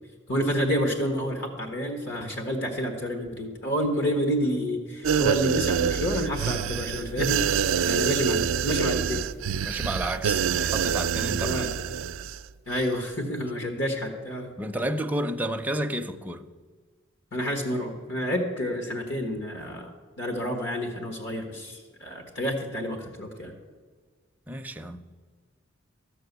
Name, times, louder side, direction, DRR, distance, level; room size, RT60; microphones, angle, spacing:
voice 1, 0.3-7.6 7.9-9.2 11.4-11.7 12.7-14.5 17.3-19.9 20.2-23.5, equal, 60° left, 1.4 m, -29 dB
sound 1, 5.0-12.4 12.7-12.9, right 7 dB, 85° right, 0.4 m, -26 dB
voice 2, 9.6-11.7 14.6-16.4 24.5-25.1, right 1 dB, 10° right, 0.5 m, -31 dB
13.0 x 6.8 x 8.0 m
head